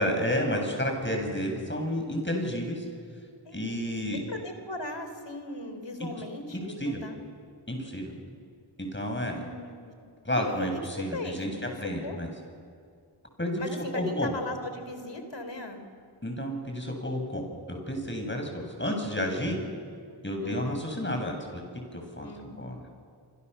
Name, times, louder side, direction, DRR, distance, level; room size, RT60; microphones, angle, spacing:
voice 1, 0.0-2.8 3.5-4.2 6.8-7.0 7.7-8.1 8.8-9.4 10.2-11.5 11.8-12.3 13.4-13.6 13.9-14.4 16.2-19.6 20.2-21.6 21.9-22.8, equal, 25° left, 3 dB, 7.8 m, -31 dB
voice 2, 4.1-7.2 9.4-9.9 10.3-10.7 10.9-12.2 13.6-15.8 19.4-19.7 20.4-20.7 22.2-22.7, left 2 dB, 60° left, 7 dB, 4.2 m, -38 dB
27.5 x 26.5 x 7.0 m, 2.3 s
cardioid pair, 40°, 49 cm